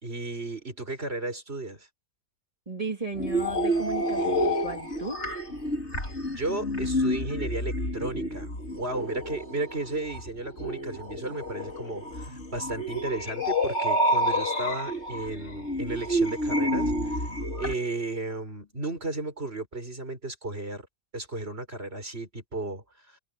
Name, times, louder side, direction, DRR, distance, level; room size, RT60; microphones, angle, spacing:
voice 1, 0.0-1.9 6.4-17.3 17.6-20.9 21.1-23.2, right 2 dB, 45° right, 5.4 m, -34 dB
voice 2, 2.7-5.2, right 3 dB, 25° right, 2.6 m, -35 dB
sound 1, 3.1-17.7, equal, 50° left, 4.3 m, -29 dB
omnidirectional pair, 1.5 m